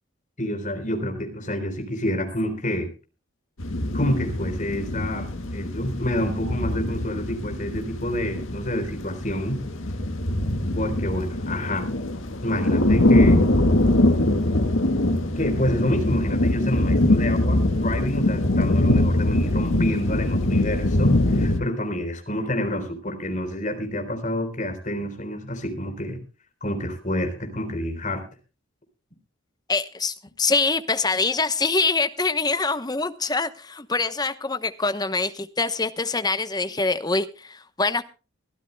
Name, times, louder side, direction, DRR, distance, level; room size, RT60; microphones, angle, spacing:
voice 1, 0.4-2.9 3.9-9.6 10.7-11.9 12.4-13.4 15.4-26.2 26.6-28.2, left 1 dB, 35° left, 6 dB, 3.9 m, -28 dB
sound 1, 3.6-21.6, left 1 dB, 75° left, 1.8 m, -22 dB
voice 2, 29.7-38.0, left 3 dB, 20° left, 11 dB, 0.9 m, -24 dB
24.0 x 13.5 x 2.2 m, 0.34 s
head